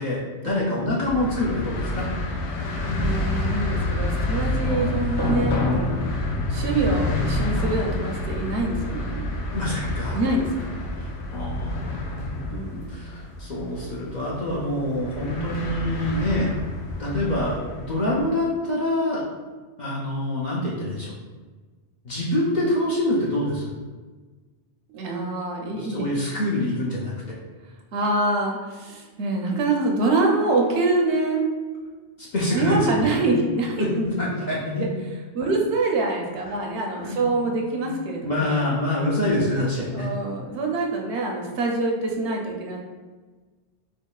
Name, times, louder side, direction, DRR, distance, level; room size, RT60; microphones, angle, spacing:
voice 1, 0.0-2.1 9.5-10.2 11.0-12.4 12.9-16.5 17.0-19.2 19.8-21.1 22.0-23.7 25.7-27.4 32.2-32.9 33.3-33.4 33.8-34.8 36.5-36.6 37.0-37.5 37.8-37.9 38.2-40.1, left 1 dB, 50° left, -6 dB, 0.6 m, -26 dB
sound 1, 1.0-18.3, left 2 dB, 90° left, 0.9 m, -28 dB
voice 2, 2.8-6.0 6.5-9.3 10.1-10.7 12.5-13.0 24.9-26.1 27.9-31.4 32.5-34.1 34.4-34.5 34.8-34.9 35.3-38.5 39.9-42.8, right 2 dB, 75° right, 0 dB, 0.9 m, -25 dB
3.6 x 3.1 x 2.3 m, 1.4 s
omnidirectional pair, 1.2 m